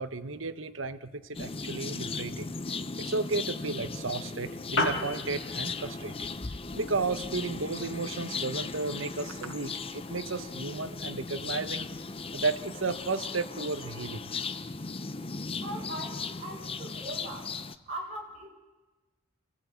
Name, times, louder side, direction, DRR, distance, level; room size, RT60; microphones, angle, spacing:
voice 1, 0.0-11.9 12.3-14.3, right 3 dB, 75° right, 10 dB, 1.2 m, -34 dB
sound 1, 1.3-17.7, left 4 dB, 30° left, 0.7 m, -37 dB
Piano, 4.5-13.5, left 2 dB, 70° left, 2.7 m, -40 dB
voice 2, 15.6-17.5 17.9-18.5, right 1 dB, 35° right, -3 dB, 5.8 m, -40 dB
29.5 x 16.5 x 8.5 m, 1.2 s
head